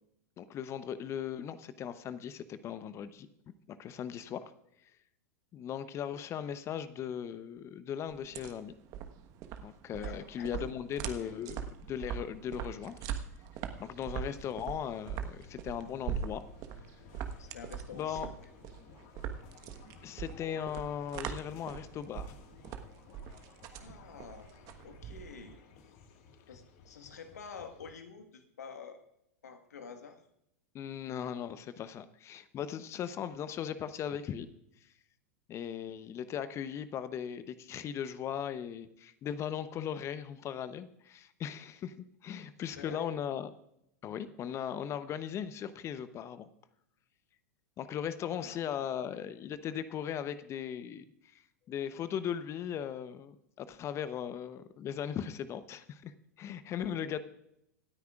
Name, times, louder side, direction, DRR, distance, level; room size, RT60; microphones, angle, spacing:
voice 1, 0.4-4.5 4.8-4.9 5.5-8.7 9.6-11.6 11.9-12.9 13.8-16.4 17.9-18.3 20.0-22.3 30.7-34.5 35.5-41.9 42.2-43.5 44.0-46.5 47.8-51.0 51.3-57.2, left 9 dB, 30° left, 13 dB, 0.8 m, -38 dB
sound 1, 8.1-25.6, right 8 dB, 40° right, 1.3 m, -41 dB
voice 2, 10.0-10.7 11.2-11.3 17.4-18.3 23.8-25.6 26.5-29.0 29.4-30.2 42.7-43.1 48.3-49.2 56.8-57.2, left 6 dB, 75° left, 6 dB, 1.6 m, -48 dB
sound 2, 14.2-27.9, left 6 dB, 50° left, 1.8 m, -57 dB
26.0 x 9.4 x 2.4 m, 0.78 s
figure-of-eight pair, 95°, 9 cm